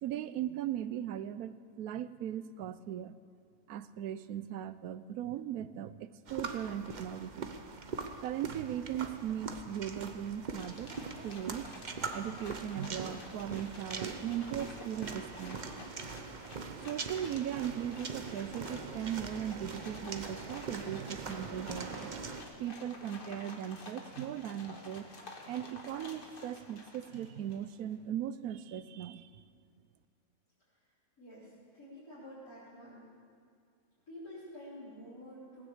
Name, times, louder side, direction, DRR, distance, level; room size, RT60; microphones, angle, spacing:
voice 1, 0.0-3.2 3.7-7.5 8.2-11.7 12.1-15.6 16.8-22.1 22.6-25.1 25.5-29.4, right 10 dB, 90° right, 14 dB, 1.1 m, -38 dB
sound 1, 6.3-22.4, right 4 dB, 40° right, 0.8 m, -42 dB
sound 2, 10.6-27.7, left 2 dB, 40° left, 1.6 m, -50 dB
voice 2, 31.2-33.1 34.1-35.7, equal, 85° left, -13 dB, 4.9 m, -49 dB
18.5 x 10.0 x 7.2 m, 2.3 s
omnidirectional pair, 1.5 m